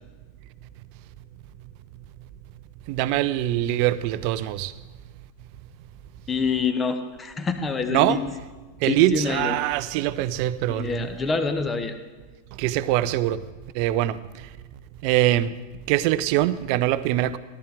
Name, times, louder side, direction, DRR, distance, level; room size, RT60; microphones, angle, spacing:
voice 1, 2.9-4.7 7.9-8.2 8.8-11.1 12.6-13.4 13.7-14.2 15.0-15.5 15.9-17.4, right 14 dB, 45° right, 0.5 m, -23 dB
voice 2, 6.3-8.2 8.9-9.5 10.7-12.0, left 4 dB, 20° left, 1.1 m, -26 dB
16.0 x 11.5 x 3.4 m
figure-of-eight pair, 90°, 0 cm